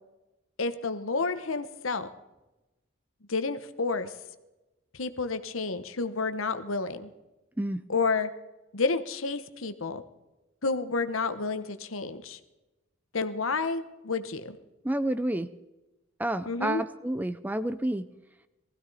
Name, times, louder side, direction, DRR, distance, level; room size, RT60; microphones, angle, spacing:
voice 1, 0.6-2.1 3.3-4.1 4.9-7.1 7.9-8.3 8.7-10.0 10.6-12.4 13.1-14.6 16.5-16.8, left 4 dB, 85° left, 10 dB, 1.1 m, -30 dB
voice 2, 14.8-15.5 16.2-18.1, right 1 dB, 10° right, 12 dB, 0.5 m, -29 dB
20.0 x 15.0 x 4.2 m, 1.0 s
head